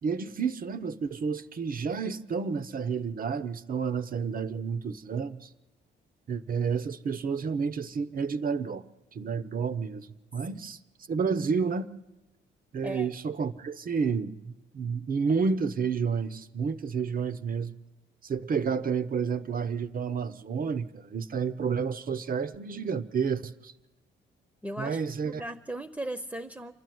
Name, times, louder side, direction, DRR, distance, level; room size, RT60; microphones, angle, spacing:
voice 1, 0.0-5.5 6.3-8.8 9.1-10.1 10.3-10.8 11.1-11.9 12.7-17.7 18.2-23.7 24.8-25.4, right 5 dB, 45° right, 14 dB, 1.0 m, -30 dB
voice 2, 24.6-26.7, right 1 dB, 10° right, 11 dB, 0.9 m, -37 dB
26.5 x 12.5 x 9.4 m, 1.1 s
cardioid pair, 90°, 20 cm